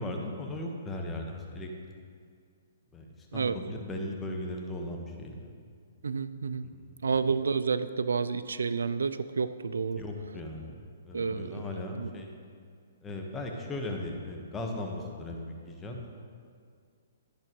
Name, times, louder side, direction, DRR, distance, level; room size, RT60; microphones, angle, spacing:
voice 1, 0.0-1.7 2.9-3.0 3.3-5.5 6.8-6.9 10.0-12.3 13.0-16.0, left 1 dB, 15° left, 1 dB, 1.4 m, -37 dB
voice 2, 6.0-6.7 7.0-10.0 11.1-12.1, right 5 dB, 80° right, 13 dB, 0.4 m, -30 dB
11.0 x 10.5 x 3.2 m, 2.1 s
hypercardioid pair, 130°, 0 cm